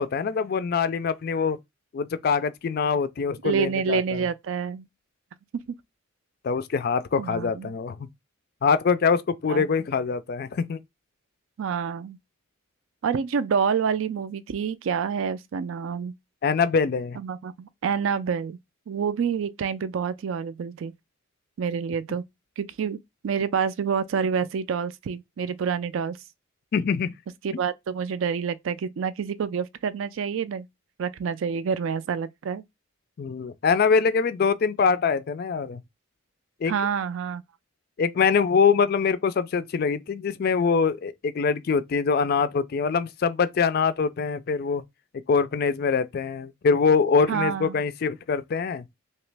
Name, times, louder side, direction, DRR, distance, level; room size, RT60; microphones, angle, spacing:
voice 1, 0.0-1.6 1.9-4.2 6.4-8.1 8.6-10.8 16.4-17.2 26.7-27.2 33.2-35.8 36.6-36.7 38.0-44.8 45.3-48.8, left 5 dB, 45° left, 0.3 m, -24 dB
voice 2, 3.4-4.9 5.7-5.8 7.2-7.7 9.5-9.7 11.6-12.2 13.0-16.1 17.2-18.6 18.9-20.9 21.6-22.2 22.6-23.0 23.2-26.2 27.4-30.7 31.0-32.6 36.7-37.4 47.3-47.8, right 6 dB, 65° right, 0.3 m, -27 dB
3.0 x 2.8 x 3.2 m
head